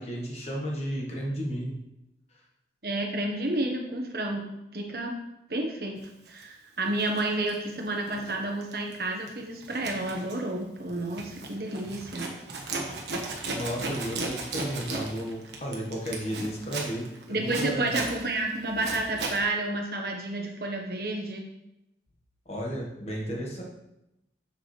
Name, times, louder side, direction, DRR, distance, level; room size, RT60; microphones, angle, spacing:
voice 1, 0.0-1.8 13.5-17.9 22.4-23.6, equal, 35° left, -2 dB, 1.4 m, -33 dB
voice 2, 2.8-5.1 5.5-6.0 6.3-12.3 17.3-21.5, right 2 dB, 60° right, 1 dB, 1.2 m, -30 dB
Zipper (clothing), 6.3-6.4 6.9-8.4 8.6-8.9 9.3-19.4, right 3 dB, 80° right, 1.3 m, -36 dB
7.1 x 6.7 x 3.3 m, 0.87 s
head